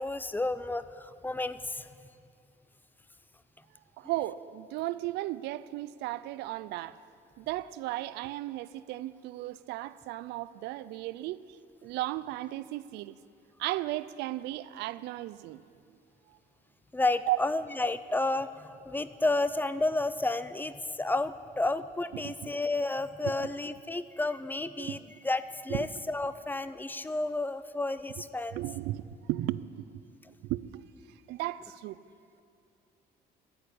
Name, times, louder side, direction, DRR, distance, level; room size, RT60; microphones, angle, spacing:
voice 1, 0.0-1.9 16.9-25.0 25.2-28.6, left 2 dB, 10° left, 0.4 m, -31 dB
voice 2, 4.0-7.0 7.4-11.4 11.8-13.2 13.6-15.6 17.3-17.4 22.1-22.3 23.4-23.5 24.8-25.0 25.7-25.9 28.5-29.8 30.4-30.8 31.3-32.0, right 16 dB, 85° right, 0.4 m, -35 dB
11.5 x 9.7 x 8.4 m
cardioid pair, 110°, 17 cm